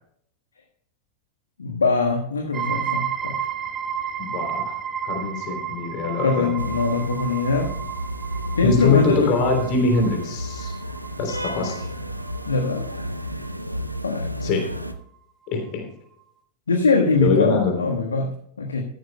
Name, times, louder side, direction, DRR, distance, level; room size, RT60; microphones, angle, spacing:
voice 1, 1.6-3.3 6.2-7.7 8.5-9.3 12.4-12.8 14.0-14.3 16.7-18.8, left 3 dB, 70° left, 2 dB, 1.4 m, -22 dB
sound 1, 2.5-14.0, right 8 dB, 25° right, 1.1 m, -32 dB
voice 2, 4.2-4.8 5.0-6.5 8.6-10.7 11.2-11.9 14.4-14.7 15.5-15.9 17.2-17.7, left 4 dB, 40° left, 3 dB, 3.3 m, -23 dB
sound 2, 6.6-14.9, equal, 90° right, 0.8 m, -31 dB
15.0 x 13.0 x 2.2 m, 0.68 s
figure-of-eight pair, 90°, 0 cm